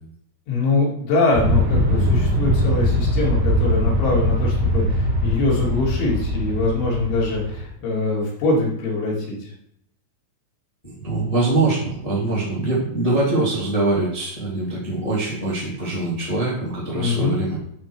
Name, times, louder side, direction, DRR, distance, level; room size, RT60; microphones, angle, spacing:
voice 1, 0.5-9.5 17.0-17.4, left 3 dB, 70° left, -4 dB, 4.8 m, -23 dB
Aircraft, 1.3-7.7, equal, 90° right, 1.0 m, -21 dB
voice 2, 10.8-17.6, right 2 dB, 25° left, -5 dB, 0.8 m, -23 dB
11.5 x 4.7 x 4.5 m, 0.71 s
omnidirectional pair, 5.7 m